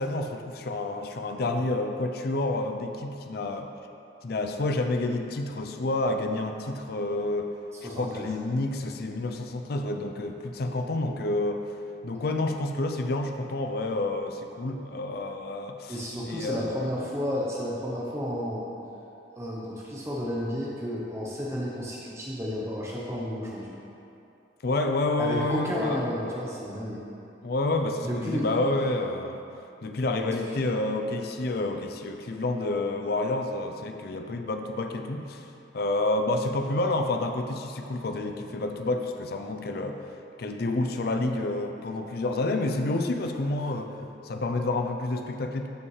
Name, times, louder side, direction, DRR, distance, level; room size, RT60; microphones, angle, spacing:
voice 1, 0.0-3.7 4.2-7.5 7.8-11.6 12.0-16.9 24.6-26.5 27.4-29.4 29.8-35.5 35.7-40.0 40.4-45.7, left 2 dB, 55° left, 5 dB, 0.5 m, -29 dB
voice 2, 7.7-8.3 15.9-18.7 19.4-23.8 25.2-27.0 28.0-28.5 30.3-30.4, equal, 15° right, -5 dB, 0.8 m, -32 dB
12.5 x 5.3 x 3.2 m, 2.7 s
head